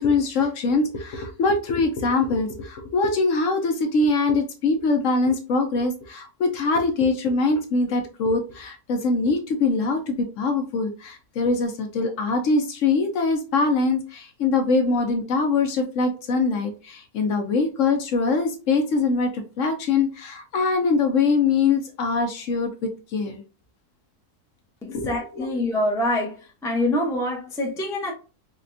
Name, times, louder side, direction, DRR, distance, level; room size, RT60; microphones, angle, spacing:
voice 1, 0.0-23.4 24.9-25.5, left 3 dB, 65° left, 0.9 m, -23 dB
voice 2, 24.8-26.3 26.6-28.1, left 1 dB, 5° left, 0.4 m, -25 dB
4.1 x 2.2 x 2.5 m
omnidirectional pair, 1.6 m